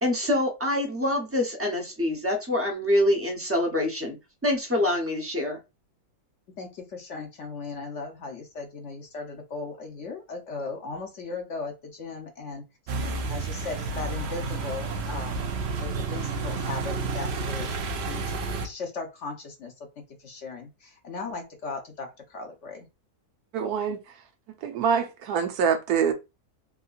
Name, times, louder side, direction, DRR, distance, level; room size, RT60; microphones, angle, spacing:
voice 1, 0.0-4.2 4.4-5.6, left 1 dB, 15° right, 0.6 m, -25 dB
voice 2, 6.6-12.6 13.3-15.5 15.8-17.7 18.0-18.4 18.6-22.9, left 4 dB, 60° left, 1.0 m, -37 dB
sound 1, 12.9-18.7, right 3 dB, 65° right, 0.7 m, -31 dB
voice 3, 23.5-24.0 24.6-26.1, right 7 dB, 80° right, 1.1 m, -25 dB
3.7 x 2.7 x 2.4 m
omnidirectional pair, 1.6 m